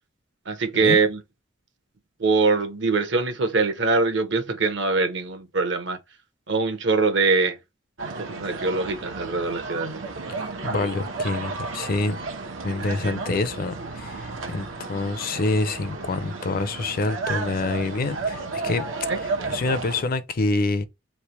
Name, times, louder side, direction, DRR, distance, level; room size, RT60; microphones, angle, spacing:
voice 1, 0.5-1.2 2.2-6.0 6.5-7.6 8.2-10.0 10.4-10.5 19.1-19.2 19.5-19.6, right 4 dB, 65° right, 0.9 m, -23 dB
sound 1, 8.0-20.0, right 3 dB, 90° right, 1.0 m, -33 dB
voice 2, 10.3-12.2 12.6-18.9 19.1-20.8, left 3 dB, 50° left, 0.5 m, -27 dB
3.3 x 2.9 x 4.4 m
head